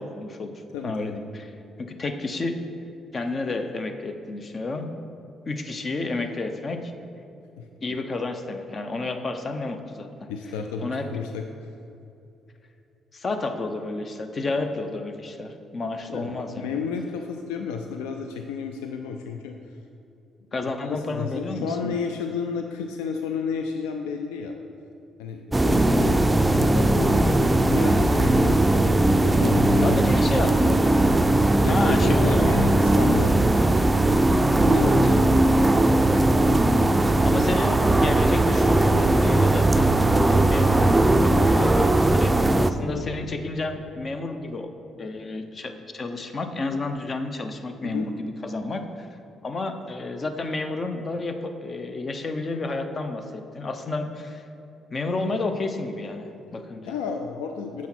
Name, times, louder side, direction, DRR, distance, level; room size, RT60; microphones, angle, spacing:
voice 1, 0.0-1.5 1.8-2.6 3.1-4.9 5.5-6.8 7.8-10.3 10.8-11.1 13.1-16.7 20.5-21.9 29.8-31.2 31.7-32.5 34.7-34.9 37.2-39.9 40.2-44.7 45.0-49.1 49.4-54.4 54.9-56.9, left 3 dB, 45° left, 7 dB, 0.7 m, -31 dB
voice 2, 0.7-1.2 7.6-7.7 10.3-11.7 16.1-19.6 20.5-24.5 25.2-26.2 26.5-28.9 29.2-30.1 31.6-33.3 34.6-35.9 42.8-43.1 47.8-48.1 56.8-57.9, left 5 dB, 85° left, 4 dB, 0.3 m, -32 dB
sound 1, 25.5-42.7, right 2 dB, 20° right, 0.4 m, -19 dB
7.2 x 5.7 x 4.4 m, 2.7 s
hypercardioid pair, 55°, 0 cm